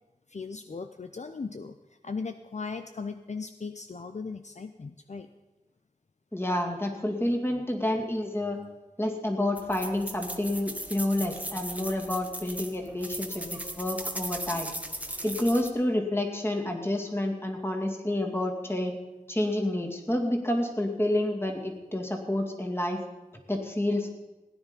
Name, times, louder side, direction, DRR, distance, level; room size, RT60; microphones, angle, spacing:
voice 1, 0.3-5.3, left 4 dB, 55° left, 8 dB, 0.6 m, -38 dB
voice 2, 6.3-8.6 9.0-14.7 15.2-18.9 19.3-23.0 23.5-24.1, left 1 dB, 15° left, 2 dB, 2.3 m, -29 dB
sound 1, 9.6-15.7, right 1 dB, 10° right, 1.2 m, -38 dB
17.0 x 9.8 x 5.3 m, 1.1 s
wide cardioid pair, 60°, 15 cm